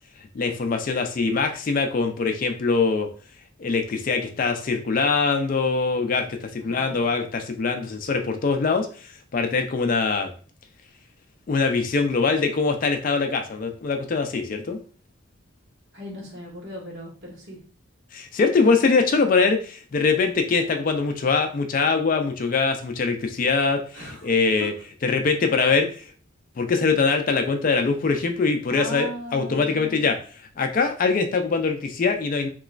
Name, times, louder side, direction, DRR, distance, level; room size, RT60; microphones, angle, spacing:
voice 1, 0.3-3.1 3.6-10.3 11.5-14.8 18.1-24.7 25.0-26.1 26.6-30.2 30.6-32.5, left 4 dB, 40° left, 5 dB, 0.3 m, -23 dB
voice 2, 6.6-7.1 15.9-17.6 23.9-24.3 24.6-24.7 28.7-30.1, equal, 65° right, -3 dB, 1.4 m, -38 dB
3.0 x 2.9 x 2.5 m, 0.41 s
head